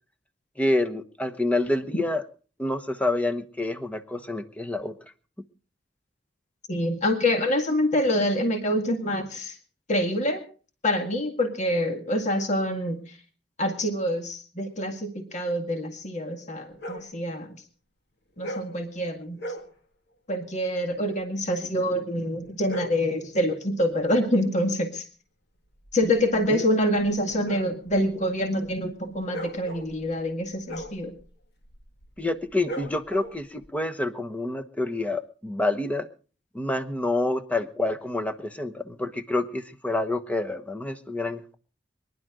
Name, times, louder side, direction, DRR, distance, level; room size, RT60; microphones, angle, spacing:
voice 1, 0.6-2.2 2.6-4.9 26.5-26.6 32.2-36.1 36.5-41.6, left 2 dB, 10° left, 7 dB, 1.1 m, -28 dB
voice 2, 6.7-9.6 9.9-10.4 10.8-13.2 13.6-17.6 18.4-19.4 20.3-25.1 25.9-31.2, left 1 dB, 40° left, 5 dB, 2.0 m, -26 dB
sound 1, 16.7-17.1 18.4-18.8 19.3-19.7 22.4-23.1 25.6-33.7, equal, 60° left, 2.2 m, -40 dB
24.0 x 11.5 x 3.8 m, 0.38 s
head